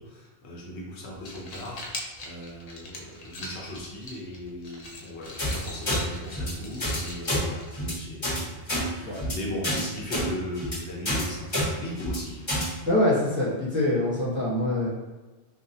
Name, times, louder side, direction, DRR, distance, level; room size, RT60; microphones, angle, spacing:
voice 1, 0.0-12.5, left 1 dB, 75° left, -3 dB, 1.1 m, -38 dB
sound 1, 1.1-8.1, left 1 dB, 45° left, 0.5 m, -42 dB
sound 2, 5.4-5.6 5.9-6.0 6.3-6.5 6.8-7.0 7.2-7.4 7.7-7.9 8.2-8.4 8.7-8.8 9.1-9.3 9.6-9.8 10.1-10.2 10.6-10.8 11.1-11.2 11.5-11.7 12.0-12.2 12.5-12.6, equal, 25° left, 1.3 m, -27 dB
voice 2, 12.9-14.9, left 1 dB, 10° right, -9 dB, 0.9 m, -24 dB
3.7 x 2.8 x 2.7 m, 1.2 s
omnidirectional pair, 1.1 m